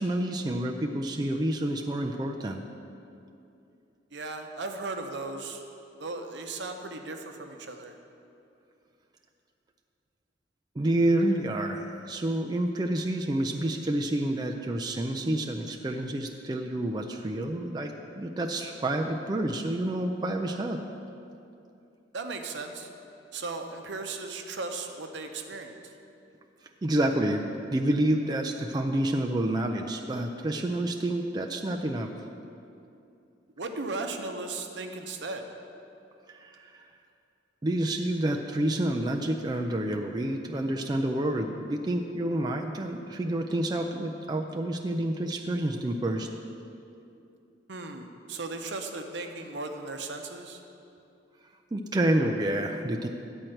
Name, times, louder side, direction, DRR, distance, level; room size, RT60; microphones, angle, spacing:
voice 1, 0.0-2.6 10.8-20.8 26.8-32.1 36.3-36.8 37.6-46.3 51.7-53.1, right 1 dB, 20° right, 3 dB, 0.4 m, -28 dB
voice 2, 4.1-5.6 6.0-8.0 22.1-22.9 23.3-25.9 33.6-35.4 47.7-50.6, right 3 dB, 80° right, 5 dB, 0.8 m, -36 dB
10.0 x 4.4 x 7.7 m, 2.7 s
head